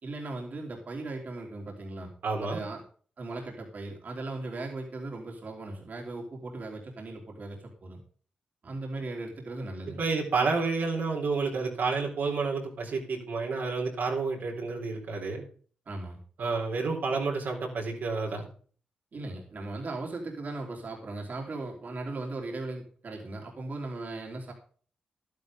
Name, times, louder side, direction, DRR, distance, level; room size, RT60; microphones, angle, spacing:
voice 1, 0.0-2.1 2.4-2.8 3.2-8.0 8.6-10.0 15.9-16.2 19.1-24.5, right 2 dB, 55° right, 0 dB, 3.6 m, -38 dB
voice 2, 2.2-2.6 10.0-15.4 16.4-18.4, right 4 dB, 70° right, -1 dB, 3.8 m, -30 dB
11.5 x 10.5 x 3.7 m, 0.44 s
supercardioid pair, 45°, 3 cm